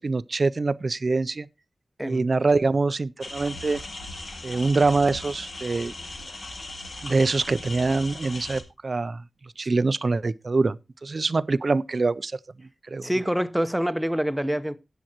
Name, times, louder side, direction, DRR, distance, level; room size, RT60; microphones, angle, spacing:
voice 1, 0.0-1.5 2.0-3.8 4.4-5.9 7.0-9.2 9.6-12.3 12.9-13.1, right 3 dB, 55° right, 0.5 m, -24 dB
sound 1, 3.2-8.6, left 2 dB, 70° left, 2.1 m, -38 dB
voice 2, 13.0-14.8, equal, 10° right, 0.9 m, -26 dB
17.5 x 7.7 x 3.0 m
wide cardioid pair, 70°, 0 cm